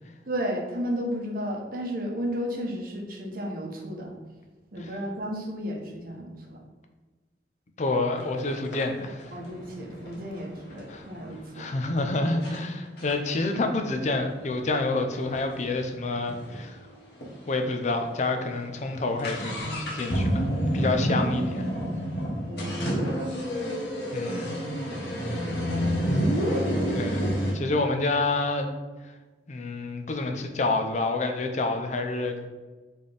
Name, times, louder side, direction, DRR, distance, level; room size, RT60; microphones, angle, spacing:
voice 1, 0.3-4.1 4.7-6.6 9.3-11.6 22.5-23.1 24.9-25.0 25.4-26.2, equal, 55° right, 1 dB, 0.8 m, -33 dB
voice 2, 7.8-9.3 10.9-11.0 11.5-16.8 17.5-20.5 20.7-21.6 24.1-24.5 26.9-28.7 29.5-32.5, left 2 dB, 40° left, 5 dB, 0.5 m, -28 dB
sound 1, 8.2-8.3 8.7-11.4 12.0-12.1 12.4-12.6 13.0-16.6 16.9-17.0 17.2-17.3 17.9-18.1 18.4-27.5, equal, 70° left, 1.0 m, -29 dB
4.3 x 3.4 x 3.3 m, 1.2 s
head